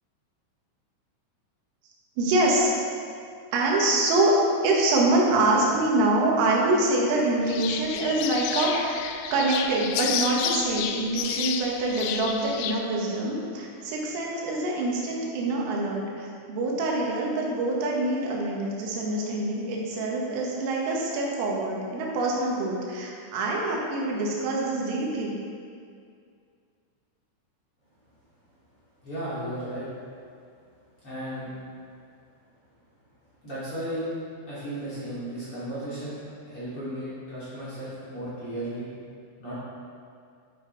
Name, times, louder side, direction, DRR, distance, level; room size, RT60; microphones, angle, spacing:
voice 1, 2.2-2.7 3.5-4.3 4.6-9.0 9.3-25.4, right 2 dB, 85° right, -2 dB, 4.1 m, -25 dB
sound 1, 7.5-12.8, left 9 dB, 80° left, 2.9 m, -31 dB
voice 2, 29.0-29.9 31.0-31.5 33.4-34.0 34.5-38.9 39.4-39.5, right 1 dB, 35° left, -11 dB, 2.8 m, -35 dB
11.0 x 9.1 x 4.0 m, 2.3 s
omnidirectional pair, 5.7 m